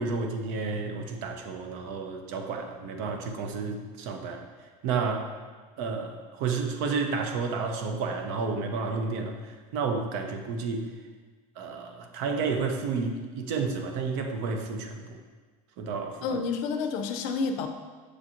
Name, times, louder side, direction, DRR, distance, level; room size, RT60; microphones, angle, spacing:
voice 1, 0.0-4.5 4.8-5.3 5.8-10.9 11.6-15.2 15.8-16.2, right 4 dB, 65° right, 4 dB, 0.6 m, -31 dB
voice 2, 16.2-17.7, left 5 dB, 70° left, 6 dB, 0.5 m, -29 dB
6.3 x 2.5 x 2.8 m, 1.4 s
supercardioid pair, 135°, 17 cm